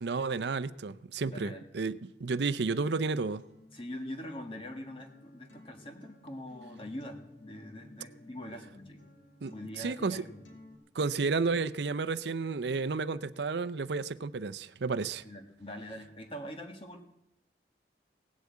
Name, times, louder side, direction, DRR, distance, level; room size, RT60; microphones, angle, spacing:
voice 1, 0.0-3.4 9.4-10.2 10.9-15.2, right 4 dB, 70° right, 0.6 m, -32 dB
voice 2, 1.3-1.7 3.7-9.0 9.5-10.6 15.2-17.0, equal, 30° left, 1.8 m, -43 dB
Acoustic guitar, 2.8-10.7, left 1 dB, 90° left, 3.5 m, -55 dB
18.0 x 8.2 x 8.4 m
head